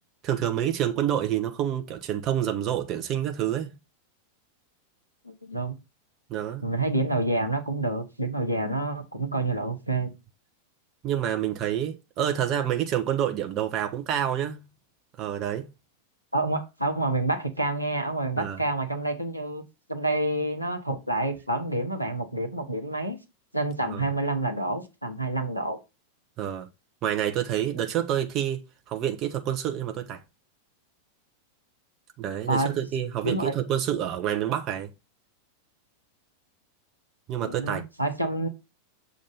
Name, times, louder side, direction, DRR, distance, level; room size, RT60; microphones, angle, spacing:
voice 1, 0.2-3.7 6.3-6.7 11.0-14.6 15.2-15.7 18.4-18.6 23.8-24.1 26.4-26.7 27.0-30.2 32.2-34.9 37.3-37.8, right 10 dB, 35° right, 0.8 m, -28 dB
voice 2, 5.2-5.8 6.6-10.1 16.3-19.6 19.9-23.2 23.5-25.8 32.5-32.7 33.2-33.5 37.4-38.5, right 2 dB, 90° right, 0.9 m, -28 dB
6.9 x 2.5 x 5.4 m
figure-of-eight pair, 90°, 0 cm